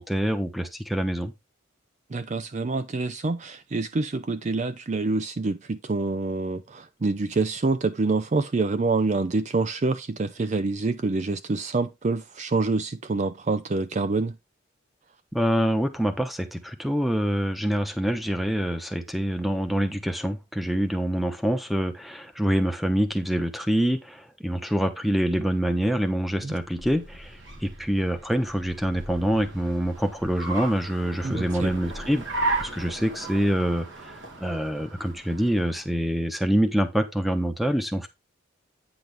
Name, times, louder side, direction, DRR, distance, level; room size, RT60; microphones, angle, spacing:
voice 1, 0.0-1.3 15.3-32.2 32.6-33.9 34.4-38.1, equal, ahead, 1.0 m, -25 dB
voice 2, 2.1-14.3 26.4-26.5 31.2-31.7, right 3 dB, 35° right, 0.4 m, -26 dB
Car, 26.5-36.0, right 2 dB, 65° right, 3.2 m, -35 dB
9.3 x 6.0 x 3.5 m
head